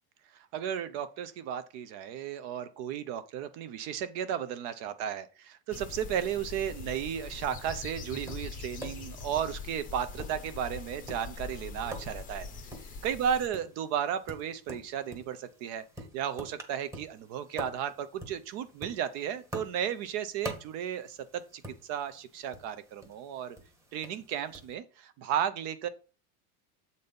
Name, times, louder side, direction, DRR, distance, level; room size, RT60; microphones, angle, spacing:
voice 1, 0.3-12.5 13.0-15.8 16.1-23.6 23.9-25.9, right 9 dB, 35° right, 12 dB, 0.5 m, -34 dB
sound 1, 5.7-13.5, left 4 dB, 20° left, 0.7 m, -42 dB
Tap, 8.0-24.7, equal, 5° right, 0.9 m, -47 dB
7.7 x 4.0 x 5.2 m, 0.37 s
supercardioid pair, 165°, 44 cm